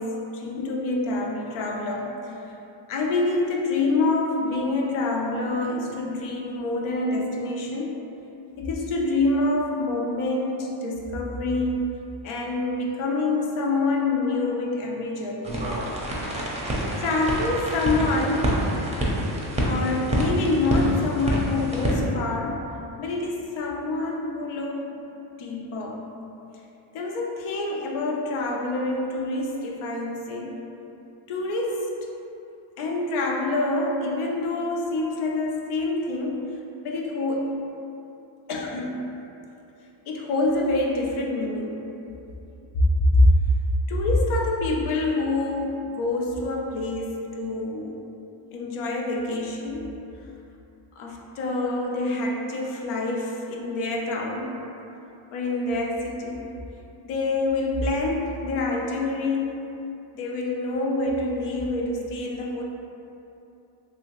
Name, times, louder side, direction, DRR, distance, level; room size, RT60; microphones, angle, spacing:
voice 1, 0.0-2.4 2.9-8.0 8.6-11.9 12.2-15.6 16.8-18.6 19.6-22.7 23.0-24.9 25.4-26.1 26.9-30.6 31.3-31.9 32.8-37.7 38.5-39.1 40.1-41.9 42.8-42.9 43.1-43.3 43.9-48.0 48.5-49.9 50.9-54.6 55.3-56.5 57.0-59.7 60.1-62.6, left 2 dB, 85° left, 0 dB, 0.6 m, -26 dB
sound 1, 15.4-21.9, right 1 dB, 15° right, 0.5 m, -27 dB
2.8 x 2.7 x 2.9 m, 2.9 s
cardioid pair, 85°, 48 cm